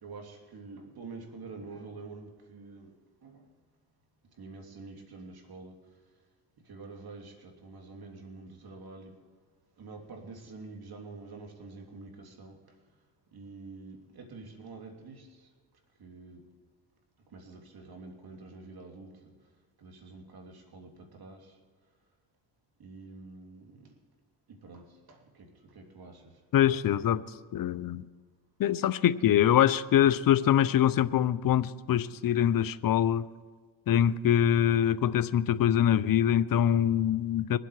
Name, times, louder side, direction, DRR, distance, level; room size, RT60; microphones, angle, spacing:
voice 1, 0.0-2.9 3.2-3.5 4.4-5.8 6.6-9.1 9.8-12.6 13.3-15.5 16.0-16.4 17.3-19.3 19.8-21.6 22.8-23.8 24.5-26.3, right 3 dB, 55° right, 3 dB, 3.0 m, -47 dB
voice 2, 26.5-27.2 27.5-28.1 28.6-33.3 33.9-37.6, left 10 dB, 50° left, 16 dB, 0.7 m, -24 dB
23.5 x 8.0 x 4.9 m, 1.5 s
supercardioid pair, 70°, 45 cm